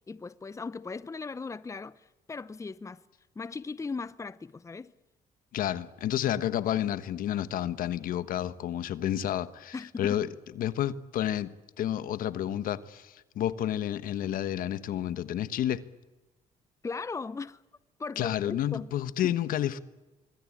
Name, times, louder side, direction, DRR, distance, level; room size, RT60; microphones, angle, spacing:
voice 1, 0.1-3.0 3.4-4.9 9.7-10.3 16.8-17.6 18.0-18.9 19.2-19.3, left 4 dB, 20° left, 0.8 m, -38 dB
voice 2, 5.5-10.3 10.6-11.5 11.8-15.8 18.2-19.8, left 11 dB, 75° left, 1.2 m, -30 dB
26.0 x 21.5 x 8.7 m
cardioid pair, 90°, 15 cm